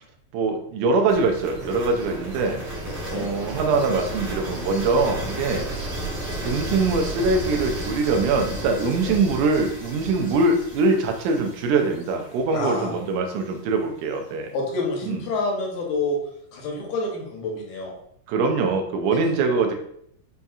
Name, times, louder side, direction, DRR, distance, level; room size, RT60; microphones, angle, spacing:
voice 1, 0.3-2.6 3.1-6.0 6.4-14.5 15.0-15.2 18.3-19.7, right 3 dB, 80° right, 4 dB, 2.0 m, -23 dB
sound 1, 1.1-13.0, right 1 dB, 55° right, 1.7 m, -33 dB
voice 2, 2.8-3.3 8.9-9.2 12.5-12.9 14.5-16.2 16.5-17.9 19.1-19.3, left 2 dB, 75° left, -1 dB, 2.2 m, -28 dB
5.3 x 2.8 x 2.3 m, 0.70 s
omnidirectional pair, 3.6 m